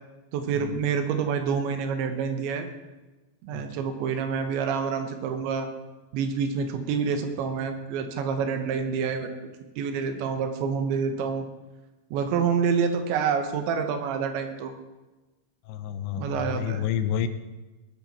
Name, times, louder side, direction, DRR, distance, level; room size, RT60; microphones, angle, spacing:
voice 1, 0.3-2.7 3.4-5.7 6.1-9.3 9.8-11.4 12.1-14.7 16.1-16.8, right 6 dB, 85° right, 7 dB, 3.5 m, -27 dB
voice 2, 15.7-17.3, left 9 dB, 85° left, 11 dB, 3.0 m, -29 dB
18.5 x 10.5 x 4.3 m, 1.1 s
omnidirectional pair, 5.1 m